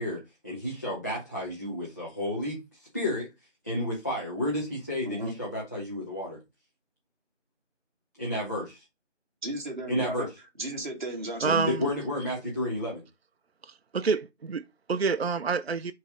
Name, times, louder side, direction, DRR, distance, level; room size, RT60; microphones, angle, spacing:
voice 1, 0.0-3.3 3.6-6.4 8.2-8.8 9.9-10.3 11.4-13.0, left 1 dB, 15° left, 0.9 m, -31 dB
voice 2, 9.4-10.3 10.6-11.8, right 1 dB, 40° right, 2.1 m, -35 dB
voice 3, 11.4-11.9 13.6-15.9, right 5 dB, 55° right, 0.5 m, -28 dB
6.7 x 3.2 x 5.3 m
figure-of-eight pair, 170°, 37 cm